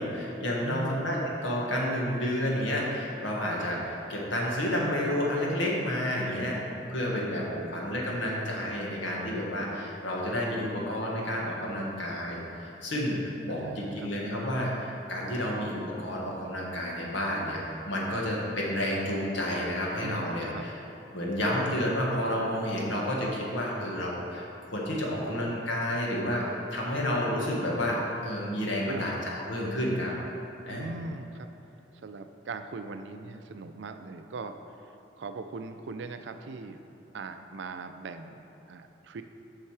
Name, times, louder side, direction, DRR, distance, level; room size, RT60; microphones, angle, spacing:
voice 1, 0.0-6.6 6.9-7.5 7.7-20.7 21.1-26.4 26.7-30.1 30.6-30.9, left 1 dB, 85° left, -3 dB, 1.4 m, -30 dB
voice 2, 0.6-1.3 7.0-7.8 13.5-14.1 20.0-20.6 25.0-25.6 28.6-29.2 30.7-31.5 31.9-36.8 37.1-39.2, right 3 dB, 70° right, 8 dB, 0.4 m, -41 dB
7.2 x 5.7 x 4.7 m, 2.9 s
head